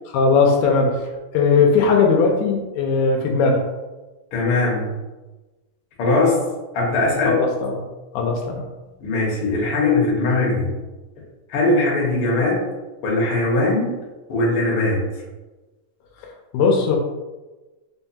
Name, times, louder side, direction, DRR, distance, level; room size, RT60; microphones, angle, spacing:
voice 1, 0.1-1.0 1.3-3.7 7.3-7.8 8.1-8.6 16.5-17.0, left 4 dB, 85° left, 1 dB, 2.0 m, -18 dB
voice 2, 4.3-4.9 6.0-6.4 6.7-7.4 9.0-10.7 11.5-12.7 13.0-14.0 14.3-15.0, left 2 dB, 65° left, -4 dB, 1.4 m, -20 dB
5.0 x 2.2 x 2.7 m, 1.2 s
omnidirectional pair, 3.5 m